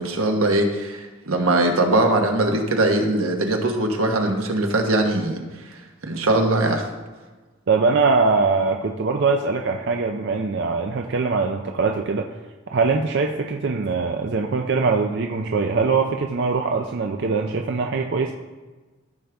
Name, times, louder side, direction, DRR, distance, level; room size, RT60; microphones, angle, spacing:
voice 1, 0.0-5.4 6.0-6.8, right 2 dB, 85° right, 3 dB, 1.2 m, -21 dB
voice 2, 7.7-12.3 12.7-18.3, right 4 dB, 55° right, 3 dB, 0.5 m, -22 dB
14.5 x 5.1 x 3.5 m, 1.3 s
head